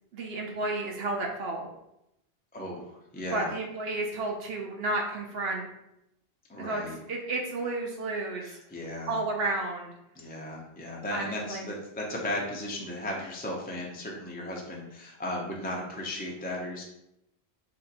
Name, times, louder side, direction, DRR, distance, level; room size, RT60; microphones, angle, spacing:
voice 1, 0.1-1.7 3.3-5.7 6.6-6.8 7.1-8.6 9.1-9.9 11.1-11.7, right 2 dB, 70° right, 0 dB, 0.8 m, -32 dB
voice 2, 2.5-3.5 6.5-7.0 8.4-9.2 10.2-16.8, left 1 dB, 15° left, -2 dB, 0.3 m, -36 dB
2.6 x 2.5 x 3.9 m, 0.83 s
omnidirectional pair, 1.1 m